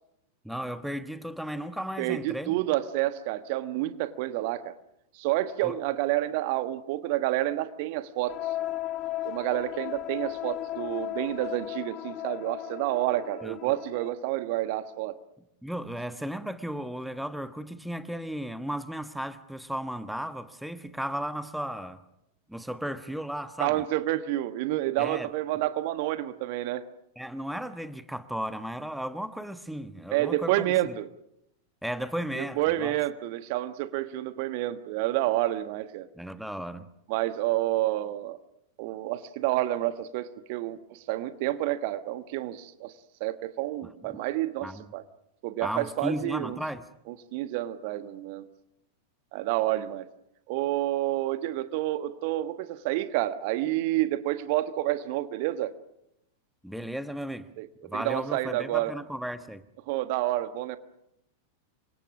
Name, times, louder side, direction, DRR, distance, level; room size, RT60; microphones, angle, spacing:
voice 1, 0.4-2.7 5.6-5.7 13.4-13.6 15.6-22.0 22.5-23.8 25.0-25.3 27.2-31.0 31.8-33.0 36.1-36.9 43.8-44.2 44.6-44.8 45.6-46.9 56.6-57.5 57.8-59.6, equal, ahead, 1.3 m, -35 dB
voice 2, 2.0-4.7 5.1-8.4 9.2-15.2 23.6-26.8 30.1-31.1 32.4-36.1 37.1-38.4 38.8-42.9 43.2-45.0 45.4-46.6 47.1-48.5 49.3-50.1 50.5-55.7 57.6-57.7 57.9-58.9 59.9-60.8, right 15 dB, 50° right, 1.4 m, -29 dB
sound 1, 8.3-14.1, left 14 dB, 35° left, 1.7 m, -36 dB
28.0 x 24.5 x 6.2 m
figure-of-eight pair, 90°, 0 cm